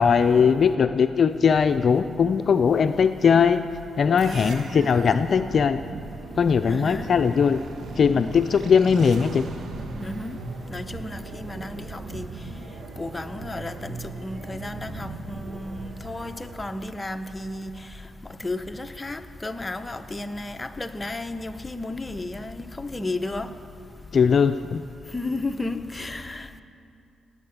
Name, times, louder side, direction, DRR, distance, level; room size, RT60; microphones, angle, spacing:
voice 1, 0.0-3.6 4.0-5.8 6.4-7.6 8.0-9.4 24.1-24.8, left 6 dB, 55° left, 0.5 m, -20 dB
voice 2, 4.2-4.7 6.7-7.2 10.0-10.4 10.7-12.3 13.0-17.7 18.4-23.5 25.1-26.6, left 2 dB, 20° left, 1.0 m, -33 dB
sound 1, 4.2-16.8, right 3 dB, 65° right, 1.5 m, -38 dB
19.0 x 8.6 x 8.7 m
supercardioid pair, 60°, 0 cm